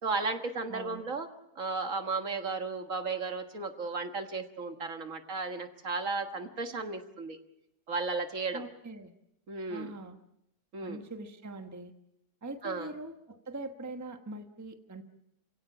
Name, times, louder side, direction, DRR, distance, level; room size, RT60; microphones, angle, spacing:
voice 1, 0.0-1.3 1.6-7.4 7.9-8.7 9.5-9.9 10.7-11.0 12.6-12.9, right 3 dB, 55° right, 6 dB, 1.9 m, -34 dB
voice 2, 0.7-1.1 8.5-9.1 9.7-10.2 10.8-11.9 12.4-15.0, right 2 dB, 10° right, 6 dB, 1.1 m, -42 dB
28.0 x 17.0 x 7.3 m, 0.83 s
omnidirectional pair, 1.7 m